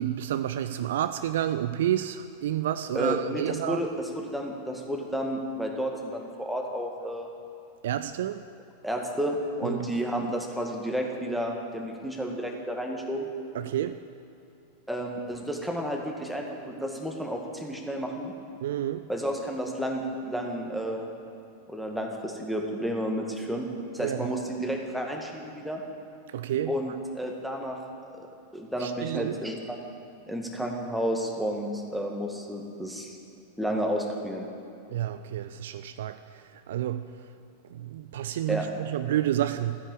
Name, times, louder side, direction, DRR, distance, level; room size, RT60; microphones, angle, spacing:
voice 1, 0.0-3.8 7.8-8.4 9.6-9.9 13.5-14.0 18.6-19.0 24.0-24.3 26.3-26.7 28.8-29.3 34.9-37.0 37.7-39.8, right 11 dB, 60° right, 11 dB, 0.4 m, -30 dB
voice 2, 3.0-7.3 8.8-13.3 14.9-18.3 19.1-21.1 21.7-23.7 23.9-25.8 26.7-27.8 28.1-29.8 30.3-33.2 33.6-34.5 38.5-38.7, equal, ahead, 1 dB, 2.0 m, -31 dB
14.5 x 9.8 x 8.6 m, 2.6 s
figure-of-eight pair, 90°, 0 cm